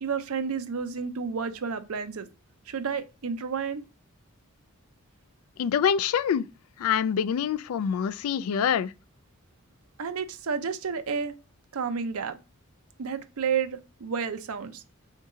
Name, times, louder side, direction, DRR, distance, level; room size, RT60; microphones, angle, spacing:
voice 1, 0.0-2.3 2.7-3.8 10.0-11.3 11.7-12.4 13.0-14.8, right 6 dB, 80° right, 0.6 m, -31 dB
voice 2, 5.6-6.4 6.8-8.9, left 8 dB, 75° left, 0.3 m, -25 dB
3.7 x 2.8 x 4.7 m
head